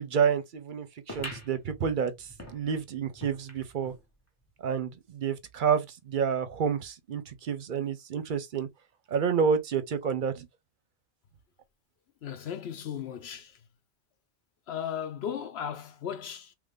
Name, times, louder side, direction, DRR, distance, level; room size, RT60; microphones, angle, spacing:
voice 1, 0.0-3.9 4.6-8.7 9.1-10.5, right 7 dB, 55° right, 0.7 m, -29 dB
sound 1, 1.1-4.0 4.5-4.6 4.8-4.9 5.7-5.8, equal, 15° left, 0.9 m, -44 dB
voice 2, 12.2-13.6 14.7-16.5, left 8 dB, 70° left, 0.9 m, -36 dB
3.1 x 2.5 x 3.6 m
omnidirectional pair, 1.2 m